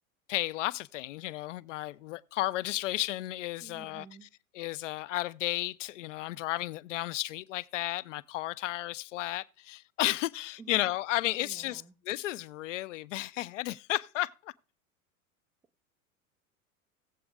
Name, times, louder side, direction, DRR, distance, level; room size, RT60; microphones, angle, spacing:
voice 1, 0.3-4.1 4.5-14.5, left 16 dB, 60° left, 0.6 m, -33 dB
voice 2, 3.6-4.3 10.6-10.8 11.4-12.0, right 6 dB, 10° right, 0.4 m, -51 dB
18.0 x 7.7 x 2.4 m
figure-of-eight pair, 85°, 42 cm